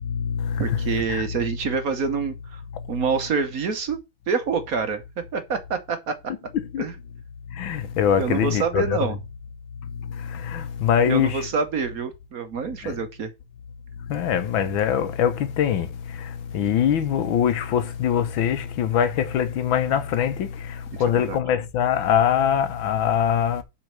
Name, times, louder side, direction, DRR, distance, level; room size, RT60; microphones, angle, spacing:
voice 1, 0.0-1.2 6.7-6.8 7.5-9.0 10.0-11.4 12.8-12.9 14.1-23.6, left 9 dB, 85° left, 1.7 m, -23 dB
voice 2, 0.6-2.6 2.9-4.0 4.3-5.0 5.3-6.3 6.8-7.0 8.2-9.2 11.0-13.3 21.1-21.4, right 5 dB, 55° right, 1.3 m, -26 dB
7.6 x 4.3 x 6.3 m
omnidirectional pair, 2.1 m